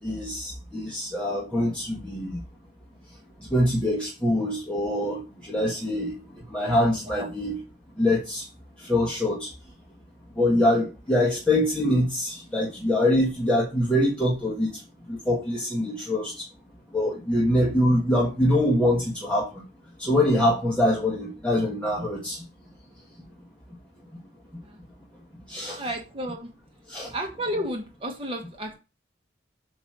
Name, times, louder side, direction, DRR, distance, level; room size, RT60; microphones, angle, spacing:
voice 1, 0.0-2.4 3.4-7.6 8.0-8.5 8.8-9.5 10.3-16.5 16.9-19.6 20.0-22.4 25.5-25.8 26.9-27.1, left 1 dB, 5° left, -6 dB, 1.5 m, -24 dB
voice 2, 25.7-26.5 27.1-28.7, equal, 30° right, 2 dB, 1.4 m, -32 dB
8.0 x 3.1 x 4.7 m, 0.29 s
head